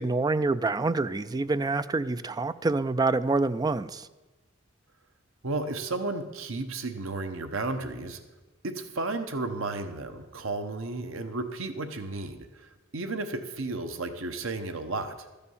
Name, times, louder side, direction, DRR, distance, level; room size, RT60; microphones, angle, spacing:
voice 1, 0.0-4.1, right 3 dB, 20° right, 14 dB, 0.3 m, -26 dB
voice 2, 5.4-8.2 8.6-15.1, right 2 dB, 75° right, 8 dB, 1.0 m, -33 dB
13.0 x 6.9 x 7.1 m, 1.1 s
head